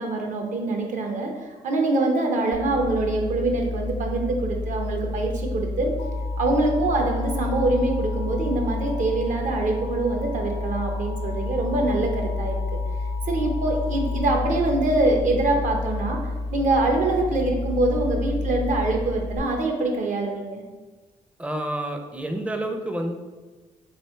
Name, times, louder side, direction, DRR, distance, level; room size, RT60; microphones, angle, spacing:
voice 1, 0.0-1.3 1.6-5.9 6.4-12.5 13.3-16.2 16.5-20.6, right 2 dB, 65° right, 2 dB, 0.8 m, -24 dB
sound 1, 2.5-19.4, left 2 dB, 50° left, 0.5 m, -30 dB
Alarm, 6.0-14.2, left 4 dB, 85° left, 0.6 m, -42 dB
voice 2, 21.4-23.1, right 1 dB, 10° right, 5 dB, 0.5 m, -29 dB
3.5 x 3.3 x 4.3 m, 1.3 s
cardioid pair, 100°, 14 cm